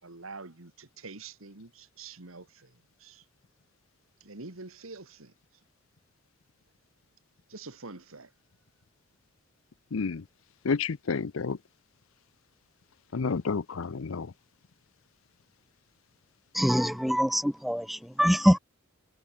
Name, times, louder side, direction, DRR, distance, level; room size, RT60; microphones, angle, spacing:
voice 1, 0.0-3.2 4.2-5.3 7.5-8.3, right 3 dB, 80° right, 2.3 m, -46 dB
voice 2, 9.9-10.2 10.6-11.6 13.1-14.3, left 5 dB, 75° left, 0.6 m, -30 dB
voice 3, 16.5-18.6, equal, ahead, 0.4 m, -24 dB
head